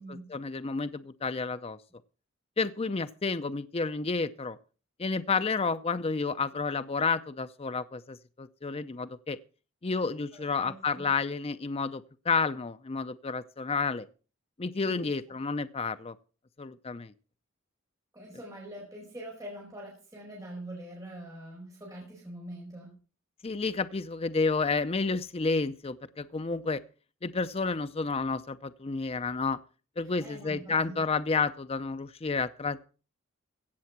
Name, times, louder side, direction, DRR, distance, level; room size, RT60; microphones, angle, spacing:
voice 1, 0.0-1.8 2.6-4.6 5.0-9.4 9.8-14.1 14.6-16.1 16.6-17.1 23.4-26.8 27.2-29.6 30.0-32.8, left 4 dB, 30° left, 12 dB, 0.5 m, -30 dB
voice 2, 10.3-11.1 14.8-15.1 18.1-23.0 30.0-31.0, right 1 dB, 15° right, -3 dB, 5.0 m, -44 dB
16.0 x 7.6 x 5.9 m, 0.37 s
head